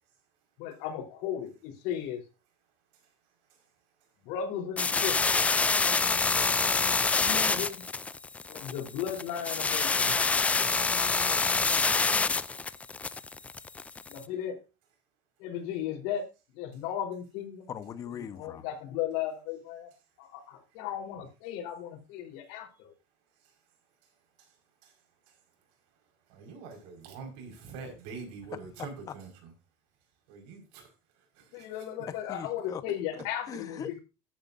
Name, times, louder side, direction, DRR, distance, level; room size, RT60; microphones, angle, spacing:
voice 1, 0.6-2.2 4.2-5.2 7.1-7.8 8.5-10.3 14.1-14.6 15.4-16.3 16.5-17.6 18.4-19.9 20.2-22.9 31.5-33.8, left 9 dB, 80° left, 3.9 m, -36 dB
sound 1, 4.8-14.2, left 4 dB, 10° left, 0.4 m, -27 dB
voice 2, 17.7-18.7 28.5-29.1 31.5-31.6 32.1-32.8 33.1-34.0, left 8 dB, 30° left, 1.0 m, -41 dB
voice 3, 26.3-29.3 30.3-30.9 31.4-31.7, right 4 dB, 85° right, 5.1 m, -44 dB
14.0 x 9.4 x 2.6 m
cardioid pair, 160°, 11 cm